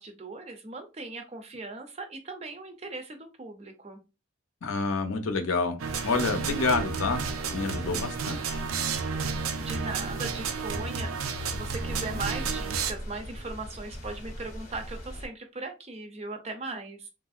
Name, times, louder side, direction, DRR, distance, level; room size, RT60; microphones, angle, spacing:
voice 1, 0.0-4.0 9.6-17.1, right 3 dB, 30° right, 0.5 m, -39 dB
voice 2, 4.6-7.2 7.5-8.6, left 4 dB, 80° left, 0.6 m, -28 dB
sound 1, 5.8-15.3, equal, 35° left, 0.6 m, -41 dB
sound 2, 5.8-12.9, right 5 dB, 85° right, 0.4 m, -32 dB
2.9 x 2.6 x 2.3 m
head